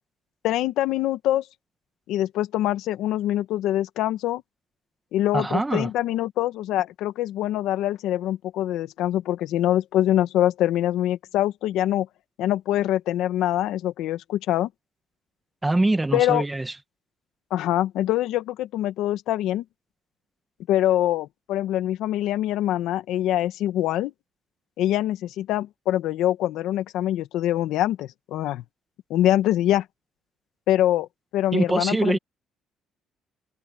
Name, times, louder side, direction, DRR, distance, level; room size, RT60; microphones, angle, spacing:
voice 1, 0.4-1.4 2.1-4.4 5.1-12.1 12.4-14.7 16.1-16.4 17.5-19.6 20.7-24.1 24.8-28.6 29.1-29.8 30.7-31.1 31.3-32.2, left 13 dB, 80° left, 1.4 m, -24 dB
voice 2, 5.3-5.9 15.6-16.7 31.5-32.2, right 2 dB, 15° right, 1.7 m, -23 dB
cardioid pair, 95°, 0 cm